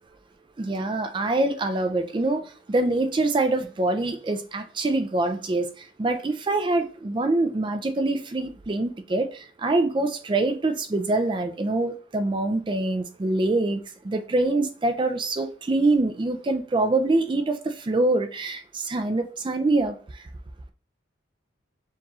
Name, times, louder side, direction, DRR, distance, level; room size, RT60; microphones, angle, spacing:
voice 1, 0.6-5.7 6.0-20.0, right 2 dB, 25° right, 0.4 m, -25 dB
7.1 x 3.0 x 2.4 m
head